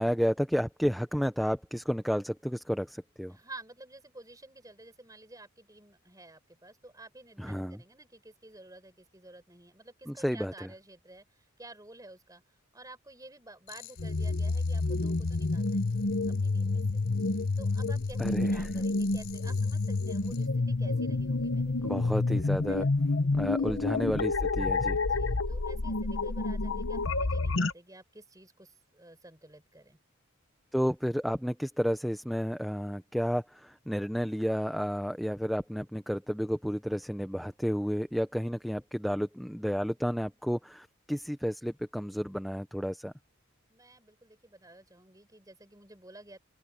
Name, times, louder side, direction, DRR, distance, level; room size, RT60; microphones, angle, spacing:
voice 1, 0.0-3.4 7.4-7.8 10.1-10.7 18.2-18.7 21.8-22.9 23.3-25.0 30.7-43.1, equal, ahead, 0.7 m, -31 dB
voice 2, 3.3-12.4 12.7-16.1 16.4-17.0 17.6-22.0 22.7-22.9 23.6-23.8 25.0-30.0 43.7-46.4, right 2 dB, 15° right, 6.5 m, -51 dB
sound 1, 13.7-20.5, left 12 dB, 50° left, 4.4 m, -54 dB
sound 2, 14.0-27.7, left 3 dB, 65° left, 1.0 m, -29 dB
head